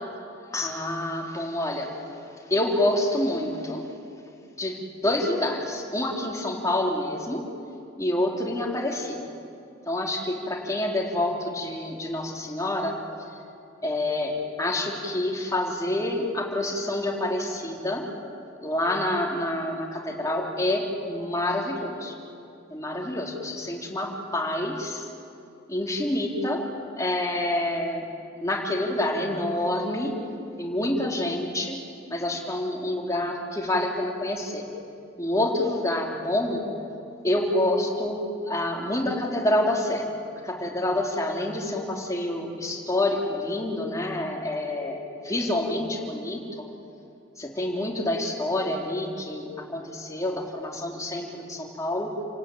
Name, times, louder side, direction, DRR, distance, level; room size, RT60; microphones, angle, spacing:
voice 1, 0.5-1.9 2.5-3.9 4.6-7.4 8.0-9.2 9.9-13.0 13.8-18.1 18.6-22.1 22.7-25.1 25.7-26.6 27.0-28.1 28.4-30.2 30.6-31.8 32.1-34.7 35.2-36.6 37.2-40.0 40.4-46.6 47.4-52.1, left 1 dB, 15° left, -1 dB, 3.3 m, -27 dB
29.5 x 18.0 x 9.2 m, 2.6 s
head